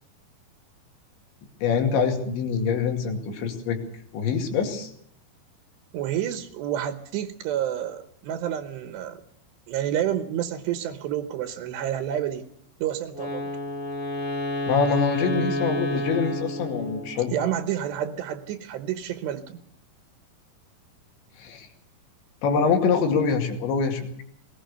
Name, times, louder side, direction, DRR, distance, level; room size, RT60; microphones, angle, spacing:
voice 1, 1.6-3.8 4.1-4.9 14.7-17.3 21.4-21.7 22.4-24.1, left 5 dB, 90° left, 3 dB, 4.6 m, -24 dB
voice 2, 5.9-9.2 9.7-12.4 12.8-13.5 17.3-19.6, right 10 dB, 80° right, 8 dB, 3.2 m, -29 dB
Wind instrument woodwind instrument, 13.1-17.3, left 1 dB, 55° left, 4.3 m, -29 dB
20.0 x 20.0 x 6.8 m, 0.66 s
omnidirectional pair, 5.0 m